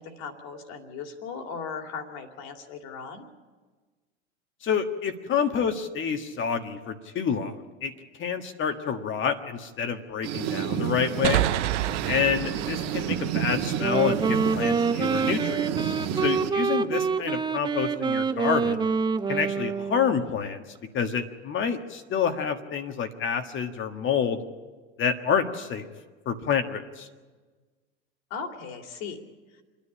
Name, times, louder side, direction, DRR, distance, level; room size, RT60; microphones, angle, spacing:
voice 1, 0.0-3.3 12.2-12.4 28.3-29.2, left 5 dB, 50° left, 5 dB, 2.8 m, -38 dB
voice 2, 4.6-7.9 8.2-11.5 12.1-18.9 19.3-20.6 20.9-24.4 25.0-25.9 26.2-27.1, left 7 dB, 35° left, 7 dB, 1.6 m, -28 dB
sound 1, 10.2-16.8, right 9 dB, 45° right, 1.9 m, -30 dB
sound 2, 11.2-14.7, right 13 dB, 70° right, 0.8 m, -30 dB
Wind instrument woodwind instrument, 13.7-20.2, right 5 dB, 10° right, 0.6 m, -26 dB
27.0 x 10.5 x 10.0 m, 1.4 s
hypercardioid pair, 90°, 36 cm